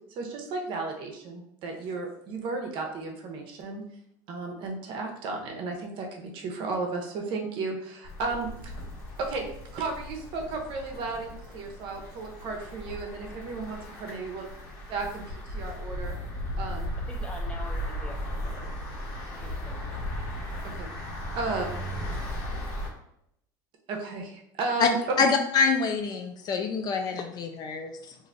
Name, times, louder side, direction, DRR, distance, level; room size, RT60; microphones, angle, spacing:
voice 1, 0.1-3.8 4.3-8.7 9.2-9.4 9.7-14.4 14.9-16.1 16.6-16.9 20.7-20.9 21.4-21.6 23.9-25.0, right 3 dB, 55° right, 2 dB, 0.7 m, -34 dB
sound 1, 8.0-22.9, equal, 70° left, 1.2 m, -36 dB
voice 2, 17.1-18.8 19.3-20.0, equal, 10° left, 0 dB, 0.7 m, -45 dB
voice 3, 25.2-28.2, left 5 dB, 40° left, 4 dB, 0.4 m, -26 dB
3.0 x 2.5 x 2.5 m, 0.77 s
supercardioid pair, 105°, 10 cm